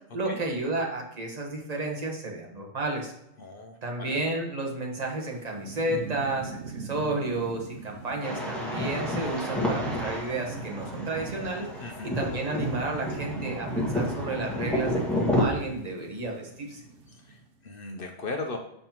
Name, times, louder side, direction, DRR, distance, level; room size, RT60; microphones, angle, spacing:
voice 1, 0.1-3.1 3.8-16.8, right 2 dB, 35° right, 1 dB, 1.3 m, -32 dB
voice 2, 3.4-4.2 7.9-8.0 11.8-12.2 17.1-18.6, left 3 dB, 55° left, 3 dB, 0.8 m, -38 dB
Thunderstorm / Rain, 5.2-17.5, right 4 dB, 85° right, 1.1 m, -41 dB
sound 1, 8.2-15.4, left 1 dB, ahead, 1.5 m, -30 dB
6.6 x 5.4 x 2.9 m, 0.81 s
omnidirectional pair, 1.2 m